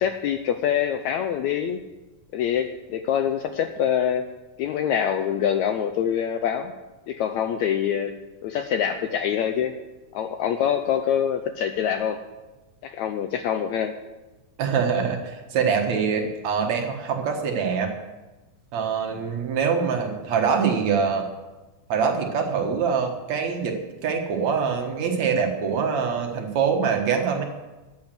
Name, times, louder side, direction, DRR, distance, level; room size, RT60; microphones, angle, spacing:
voice 1, 0.0-1.8 2.3-4.3 4.6-6.7 7.1-8.1 8.4-9.7 10.1-12.2 12.8-13.9, left 9 dB, 80° left, 8 dB, 1.7 m, -25 dB
voice 2, 14.6-17.9 18.7-21.3 21.9-23.8 24.0-27.4, right 6 dB, 60° right, 3 dB, 2.5 m, -24 dB
13.5 x 9.0 x 7.5 m, 1.1 s
omnidirectional pair, 3.9 m